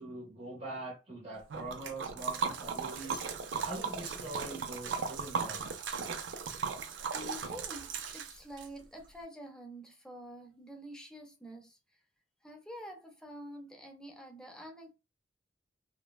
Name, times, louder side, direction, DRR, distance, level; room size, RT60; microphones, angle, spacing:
voice 1, 0.0-3.2 3.6-5.8, right 2 dB, 35° right, 0.7 m, -43 dB
Liquid, 1.5-8.7, right 5 dB, 90° right, 0.5 m, -37 dB
voice 2, 7.1-11.8 12.4-14.9, equal, 5° left, 0.5 m, -47 dB
3.1 x 2.1 x 2.2 m
head